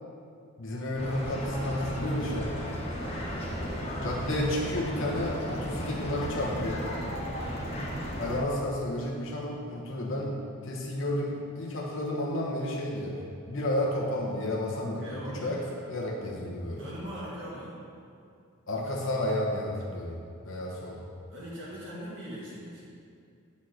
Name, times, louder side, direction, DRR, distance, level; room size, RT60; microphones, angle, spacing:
voice 1, 0.6-2.6 4.0-6.9 8.2-10.4 10.6-15.6 15.9-16.9 18.7-20.2 20.4-21.0, left 1 dB, 60° left, -3 dB, 1.1 m, -31 dB
sound 1, 1.0-8.4, equal, 25° left, 1.1 m, -35 dB
voice 2, 7.4-7.7 15.0-15.7 16.8-17.8 21.3-22.8, equal, 55° right, -8 dB, 1.9 m, -41 dB
8.6 x 4.3 x 6.3 m, 2.4 s
head